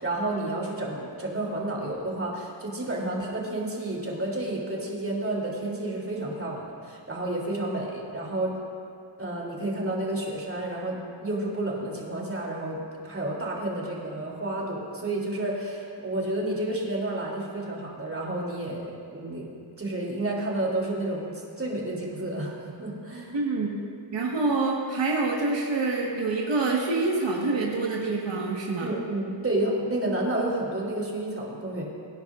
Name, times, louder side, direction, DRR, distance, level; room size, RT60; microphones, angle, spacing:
voice 1, 0.0-8.5 9.2-19.5 19.8-23.4 28.8-31.8, right 1 dB, 30° right, -3 dB, 3.2 m, -30 dB
voice 2, 23.3-23.7 24.1-28.9, right 3 dB, 75° right, -3 dB, 1.7 m, -26 dB
24.5 x 10.5 x 2.6 m, 2.3 s
wide cardioid pair, 95°, 45 cm